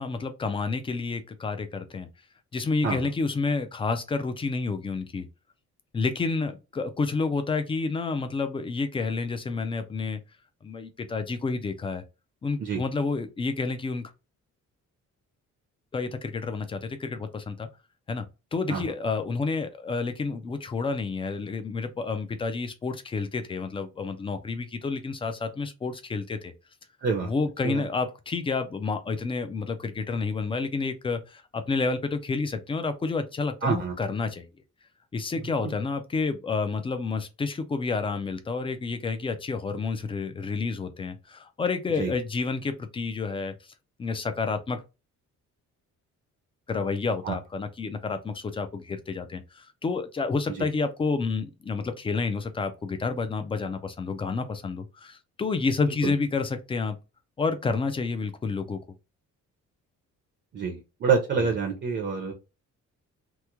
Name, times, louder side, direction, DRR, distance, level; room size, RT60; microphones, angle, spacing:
voice 1, 0.0-2.1 2.5-5.3 5.9-10.2 10.6-12.0 12.4-14.1 15.9-17.7 18.1-18.3 18.5-26.5 27.2-34.5 35.1-43.5 44.0-44.8 46.7-57.0 57.4-58.8, left 4 dB, 20° left, 0.3 m, -29 dB
voice 2, 33.6-33.9 35.6-35.7 42.0-42.1 47.2-47.4 50.5-50.6 56.0-56.1 60.5-62.3, right 5 dB, 40° right, 0.6 m, -27 dB
3.0 x 2.1 x 3.4 m
cardioid pair, 175°, 30 cm